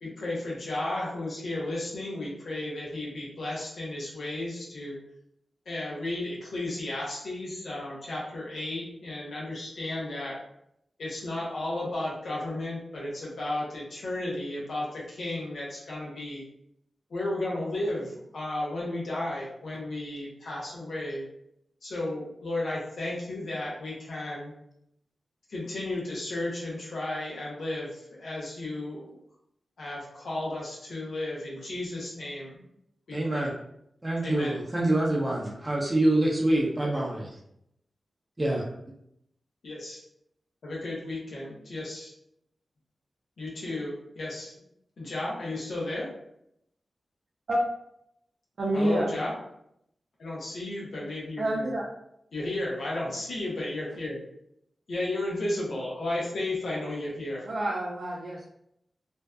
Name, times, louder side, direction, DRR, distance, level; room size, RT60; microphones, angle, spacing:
voice 1, 0.0-5.0 5.7-10.3 11.0-16.4 17.1-21.3 21.8-24.5 25.5-29.1 29.8-32.6 33.1-33.5 34.2-34.6 39.6-40.0 40.6-42.1 43.4-44.5 45.0-46.1 48.7-49.3 50.2-51.7 52.3-54.2 54.9-57.4, left 1 dB, 80° left, -5 dB, 0.7 m, -33 dB
voice 2, 33.1-33.5 34.0-37.3 38.4-38.6, right 1 dB, 25° right, -3 dB, 0.7 m, -26 dB
voice 3, 48.6-49.2 51.4-51.8 57.4-58.5, right 1 dB, 75° right, -4 dB, 0.5 m, -28 dB
2.6 x 2.1 x 2.3 m, 0.75 s
cardioid pair, 40°, 0 cm